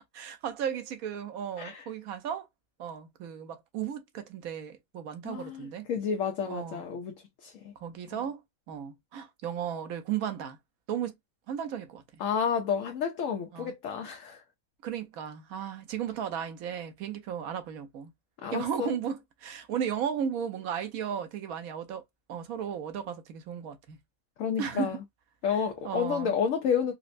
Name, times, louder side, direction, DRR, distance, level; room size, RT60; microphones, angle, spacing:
voice 1, 0.1-2.5 2.8-5.9 6.5-6.8 7.8-8.4 8.7-10.6 10.9-11.1 11.5-12.0 13.5-13.7 14.8-18.1 18.5-22.0 22.3-24.0 24.6-25.0 25.5-26.3, right 8 dB, 90° right, 1.2 m, -35 dB
voice 2, 5.2-7.7 12.2-14.4 18.4-18.9 24.4-25.0 25.4-26.9, left 7 dB, 70° left, 1.0 m, -30 dB
4.3 x 2.1 x 2.5 m
omnidirectional pair, 1.5 m